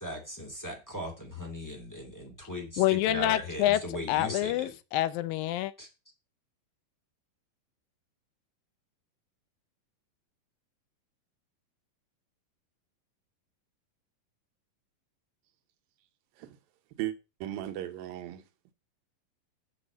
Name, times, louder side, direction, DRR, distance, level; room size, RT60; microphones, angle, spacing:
voice 1, 0.0-4.7 5.8-5.9, left 1 dB, 5° left, 1.7 m, -38 dB
voice 2, 2.8-3.8 4.1-5.7, left 14 dB, 85° left, 2.4 m, -27 dB
voice 3, 17.4-18.4, right 13 dB, 85° right, 2.7 m, -36 dB
7.2 x 6.3 x 6.2 m
omnidirectional pair, 4.0 m